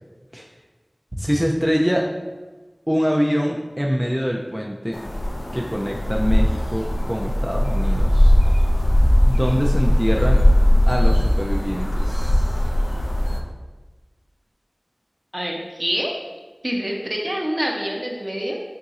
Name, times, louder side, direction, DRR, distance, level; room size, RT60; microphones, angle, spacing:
voice 1, 1.2-2.0 2.9-5.0 5.5-8.3 9.2-10.4 10.9-12.6, equal, 5° right, -1 dB, 0.3 m, -24 dB
sound 1, 4.9-13.4, left 1 dB, 85° left, 0.4 m, -18 dB
voice 2, 15.3-16.2 16.6-18.6, equal, 40° right, 0 dB, 0.6 m, -26 dB
3.8 x 2.4 x 4.0 m, 1.3 s
wide cardioid pair, 45°, 0 cm